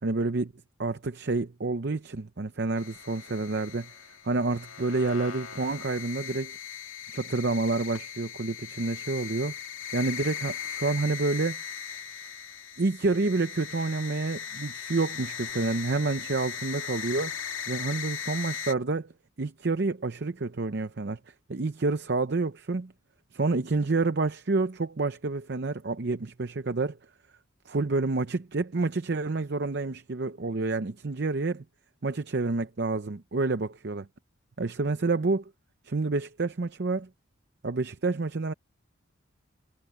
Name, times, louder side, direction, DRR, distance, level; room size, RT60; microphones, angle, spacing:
voice 1, 0.0-0.5 0.8-3.9 4.2-6.6 7.1-9.5 9.9-11.6 12.8-17.3 17.7-19.1 19.4-21.2 21.5-22.9 23.3-27.0 27.7-31.6 32.0-34.1 34.6-35.5 35.8-37.1 37.6-38.5, right 3 dB, 50° right, 0.6 m, -28 dB
sound 1, 2.8-18.7, left 8 dB, 75° left, 2.3 m, -38 dB
head